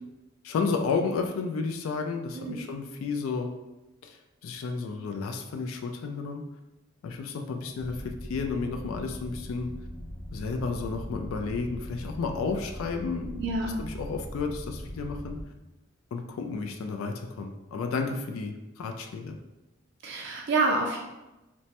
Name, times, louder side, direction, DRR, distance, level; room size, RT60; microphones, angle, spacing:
voice 1, 0.4-3.5 4.0-6.4 7.0-9.7 10.3-13.4 13.8-15.4 16.1-19.4, left 4 dB, 80° left, 5 dB, 0.3 m, -32 dB
voice 2, 2.3-2.7 13.4-13.8 20.0-21.0, right 3 dB, 55° right, 0 dB, 0.3 m, -28 dB
sound 1, 7.8-15.4, equal, 15° left, 0.6 m, -40 dB
3.0 x 2.1 x 2.8 m, 1.0 s
head